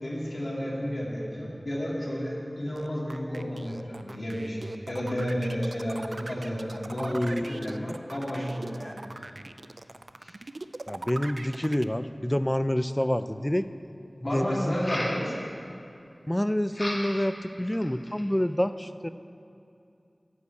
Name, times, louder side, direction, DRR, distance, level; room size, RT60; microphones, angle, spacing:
voice 1, 0.0-9.4 10.2-10.3 14.2-15.3, equal, 60° left, -5 dB, 2.4 m, -32 dB
sound 1, 2.8-11.8, right 2 dB, 70° right, 0.3 m, -41 dB
voice 2, 7.0-8.0 10.9-13.7 14.3-14.7 16.3-19.1, equal, 15° left, 12 dB, 0.4 m, -28 dB
sound 2, 13.0-13.1 14.7-15.2 16.7-17.3 17.7-18.3, equal, 30° left, 1.7 m, -34 dB
11.0 x 5.6 x 8.2 m, 2.6 s
wide cardioid pair, 50°, 0 cm